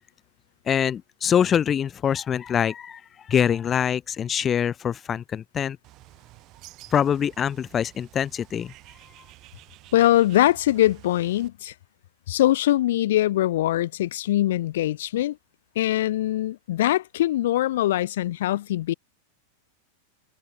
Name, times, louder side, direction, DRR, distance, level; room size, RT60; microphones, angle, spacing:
voice 1, 0.7-3.0 3.3-5.8 6.9-8.7, left 8 dB, 25° left, 2.9 m, -24 dB
Bird, 5.8-11.5, right 18 dB, 40° right, 7.6 m, -51 dB
voice 2, 9.9-11.7 12.3-15.4 15.7-18.9, left 14 dB, 55° left, 1.6 m, -22 dB
figure-of-eight pair, 90°, 0 cm